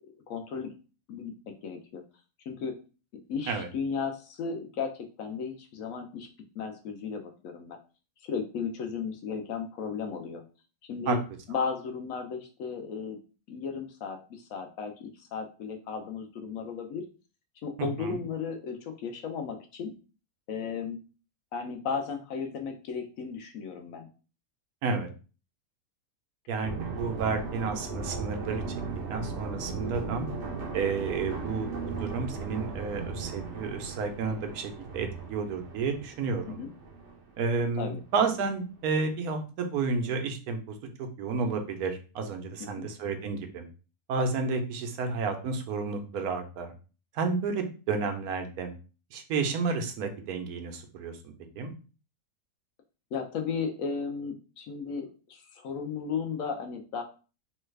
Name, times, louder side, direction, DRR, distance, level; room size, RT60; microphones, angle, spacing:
voice 1, 0.3-0.7 1.1-2.0 2.5-2.7 3.3-6.3 6.6-7.8 8.2-10.4 10.9-11.2 11.5-13.2 13.5-17.0 17.6-19.9 20.5-21.0 21.5-24.1 36.5-36.7 37.8-38.0 42.6-42.9 53.1-57.0, left 5 dB, 70° left, 5 dB, 1.0 m, -35 dB
voice 2, 17.8-18.2 24.8-25.1 26.5-28.6 29.1-30.3 30.7-31.7 32.0-36.6 37.4-43.7 44.1-46.7 47.1-48.7 49.1-51.7, right 4 dB, 85° right, 5 dB, 1.1 m, -31 dB
sound 1, 26.6-38.0 38.4-38.5, right 4 dB, 60° right, 0.8 m, -37 dB
3.2 x 2.3 x 3.2 m, 0.35 s
omnidirectional pair, 1.6 m